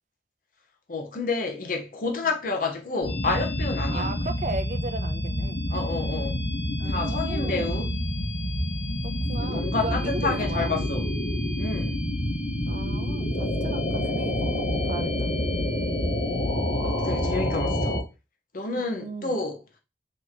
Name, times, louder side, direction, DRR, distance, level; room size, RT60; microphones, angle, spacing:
voice 1, 0.9-4.1 5.7-6.4 6.8-7.9 9.4-11.1 11.6-12.0 16.7-18.0 18.5-19.6, left 3 dB, 50° left, 0.8 m, -29 dB
sound 1, 3.0-18.0, left 1 dB, 70° left, 1.1 m, -28 dB
voice 2, 3.9-5.6 6.8-8.0 9.0-10.7 12.7-15.3 18.7-19.3, right 3 dB, 45° right, 0.5 m, -36 dB
3.0 x 2.8 x 4.1 m
head